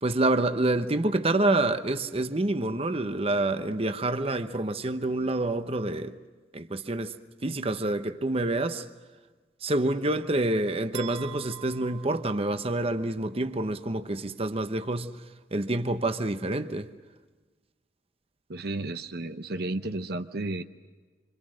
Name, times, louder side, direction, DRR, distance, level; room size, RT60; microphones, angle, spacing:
voice 1, 0.0-6.1 6.5-7.2 7.4-8.8 9.6-15.2 15.5-16.9, right 2 dB, 35° right, 1.0 m, -27 dB
sound 1, 10.9-13.1, right 13 dB, 85° right, 1.6 m, -45 dB
voice 2, 18.5-20.6, right 2 dB, 60° right, 0.8 m, -32 dB
26.5 x 25.5 x 6.3 m
head